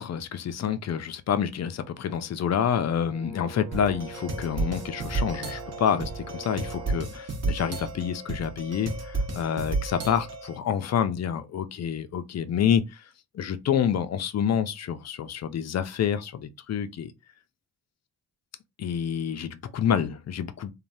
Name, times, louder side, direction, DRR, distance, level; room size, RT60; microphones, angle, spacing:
voice 1, 0.0-12.8 13.3-17.1 18.8-20.7, left 8 dB, 45° left, 0.4 m, -28 dB
Brass instrument, 3.0-7.1, right 5 dB, 75° right, 1.2 m, -43 dB
sound 1, 3.7-10.6, right 3 dB, 40° right, 0.9 m, -32 dB
3.2 x 2.2 x 2.6 m
cardioid pair, 100°, 38 cm